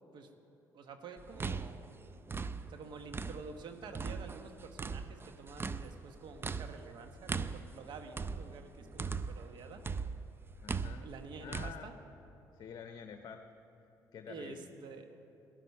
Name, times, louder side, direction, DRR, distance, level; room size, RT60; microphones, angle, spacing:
voice 1, 0.7-1.8 2.7-9.8 11.0-11.9 14.3-15.1, right 4 dB, 65° right, 6 dB, 1.2 m, -49 dB
sound 1, 1.2-3.6 3.9-9.5 9.8-11.7, right 5 dB, 25° right, 0.5 m, -39 dB
voice 2, 10.6-11.1 11.4-11.9 12.5-13.4 14.1-14.7, left 7 dB, 50° left, 6 dB, 0.7 m, -48 dB
13.5 x 11.0 x 5.5 m, 2.9 s
supercardioid pair, 60°, 9 cm